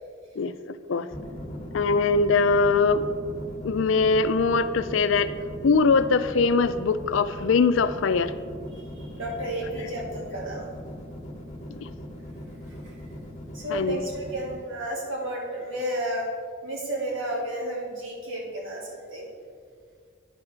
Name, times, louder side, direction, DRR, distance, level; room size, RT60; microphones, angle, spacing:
sound 1, 1.1-14.6, equal, 35° left, 1.2 m, -39 dB
voice 1, 1.7-3.0 3.6-5.3 5.6-8.3 11.8-11.9 13.7-14.0, left 4 dB, 70° left, 13 dB, 0.4 m, -22 dB
voice 2, 8.7-10.7 12.9-13.0 13.5-16.3 16.6-19.3, right 1 dB, 85° right, -2 dB, 2.2 m, -32 dB
9.8 x 4.8 x 6.0 m, 2.1 s
head